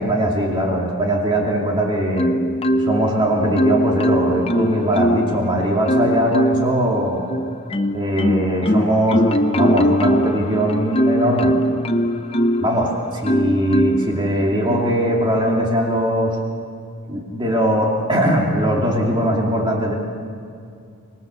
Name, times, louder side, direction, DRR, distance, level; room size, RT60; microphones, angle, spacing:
voice 1, 0.0-2.3 2.8-7.2 7.9-11.5 12.6-12.9 13.2-16.4 17.1-20.0, equal, 20° right, -2 dB, 2.7 m, -20 dB
Marimba xylophone, 2.2-3.1 3.6-5.4 5.9-6.8 7.3-12.7 13.2-14.1 14.7-14.9, equal, 25° left, 0.8 m, -20 dB
26.0 x 20.5 x 7.0 m, 2.4 s
head